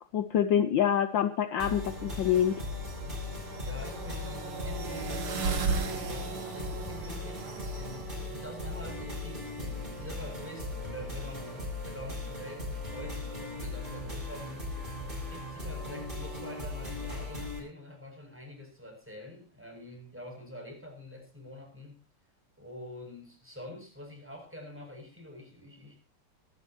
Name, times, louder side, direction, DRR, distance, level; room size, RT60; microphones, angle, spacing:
voice 1, 0.1-2.6, left 9 dB, 65° left, 10 dB, 1.5 m, -26 dB
sound 1, 1.6-17.6, left 2 dB, 20° right, 7.8 m, -38 dB
sound 2, 1.6-11.6, right 5 dB, 85° right, 3.2 m, -38 dB
voice 2, 3.2-14.8 15.2-22.0 22.6-26.0, left 1 dB, 5° right, 1 dB, 7.7 m, -46 dB
25.0 x 13.0 x 3.1 m, 0.33 s
omnidirectional pair, 2.4 m